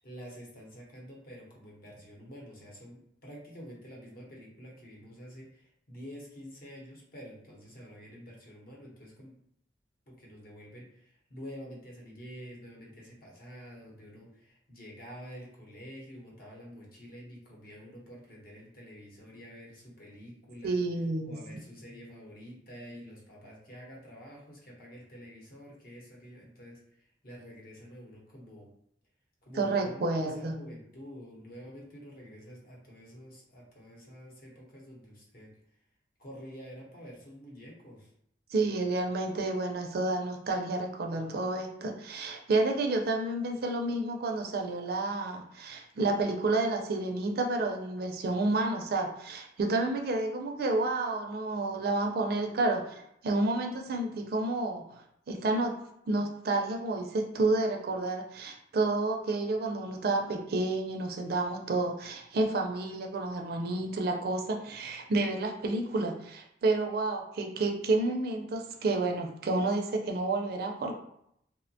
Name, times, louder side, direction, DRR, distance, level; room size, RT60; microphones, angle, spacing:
voice 1, 0.0-9.3 10.1-20.8 21.2-28.7 29.4-35.5 36.2-38.1, equal, 55° left, -3 dB, 0.8 m, -48 dB
voice 2, 20.6-21.4 29.6-30.6 38.5-54.8 55.3-55.7 56.1-70.9, right 2 dB, 55° right, 3 dB, 0.4 m, -30 dB
2.8 x 2.1 x 2.6 m, 0.74 s
head